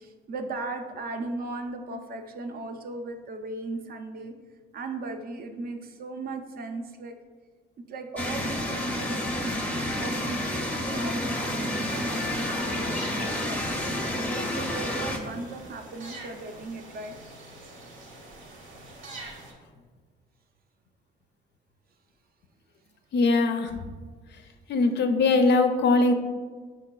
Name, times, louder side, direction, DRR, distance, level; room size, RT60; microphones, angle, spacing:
voice 1, 0.0-4.3 4.7-7.2 7.9-13.6 14.2-17.2, right 3 dB, 50° right, 6 dB, 0.5 m, -37 dB
sound 1, 8.2-15.2, left 1 dB, 5° left, 0.5 m, -29 dB
sound 2, 11.2-19.5, right 2 dB, 85° right, 0.8 m, -45 dB
voice 2, 23.1-23.8 24.7-26.1, left 3 dB, 60° left, 7 dB, 0.4 m, -21 dB
4.8 x 4.0 x 2.2 m, 1.5 s
cardioid pair, 90°, 20 cm